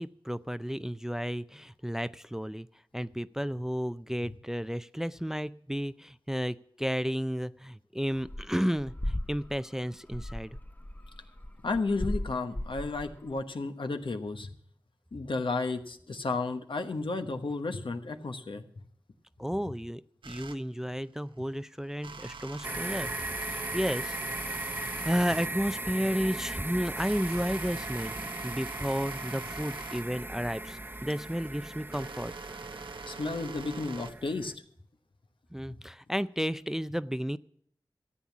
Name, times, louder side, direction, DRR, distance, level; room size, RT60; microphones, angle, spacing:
voice 1, 0.0-2.7 2.9-10.6 19.4-23.1 23.4-24.2 24.4-28.2 28.4-32.3 35.5-37.4, equal, 5° right, 15 dB, 0.4 m, -32 dB
sound 1, 8.2-8.5 8.8-13.4, left 1 dB, 20° left, 0.8 m, -36 dB
voice 2, 11.6-14.5 15.1-18.6 33.1-34.5, left 3 dB, 75° left, 7 dB, 1.2 m, -33 dB
sound 2, 20.2-20.6 22.0-25.5 26.2-34.1, right 4 dB, 85° right, 0.7 m, -44 dB
sound 3, 22.6-34.5, right 1 dB, 25° right, 0.9 m, -38 dB
14.0 x 8.6 x 7.3 m, 0.65 s
cardioid pair, 40°, 9 cm